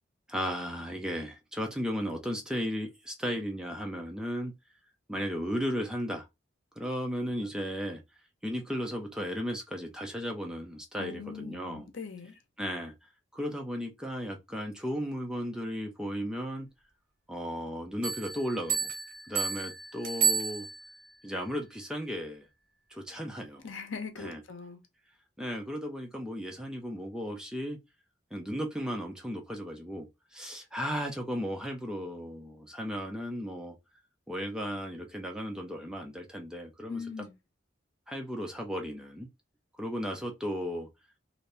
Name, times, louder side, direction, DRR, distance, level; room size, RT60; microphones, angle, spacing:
voice 1, 0.3-4.5 5.1-6.3 6.8-8.0 8.4-11.9 12.6-12.9 13.3-16.7 17.3-18.9 19.3-20.7 21.2-22.5 22.9-23.6 24.2-24.4 25.4-27.8 28.3-33.7 34.3-37.0 38.1-39.3 39.8-40.9, equal, 5° right, 0.5 m, -35 dB
voice 2, 11.0-12.4 23.6-24.8 36.9-37.3, left 5 dB, 80° left, 0.7 m, -41 dB
sound 1, 18.0-21.1, right 6 dB, 45° right, 0.8 m, -31 dB
2.7 x 2.6 x 3.3 m
head